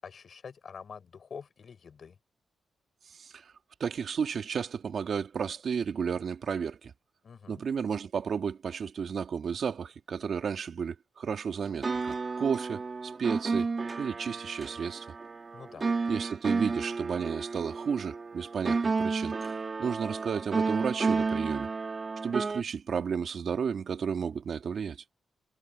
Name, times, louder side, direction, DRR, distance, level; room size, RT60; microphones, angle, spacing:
voice 1, 0.0-2.1 7.2-7.6 15.5-15.9, left 6 dB, 50° left, 6.5 m, -46 dB
voice 2, 3.2-3.5 3.8-6.9 7.5-13.7 14.0-15.1 16.1-19.3 19.8-21.7 22.2-25.0, right 6 dB, 60° right, 2.0 m, -32 dB
sound 1, 11.6-22.6, right 4 dB, 35° right, 2.0 m, -32 dB
cardioid pair, 100°, 0 cm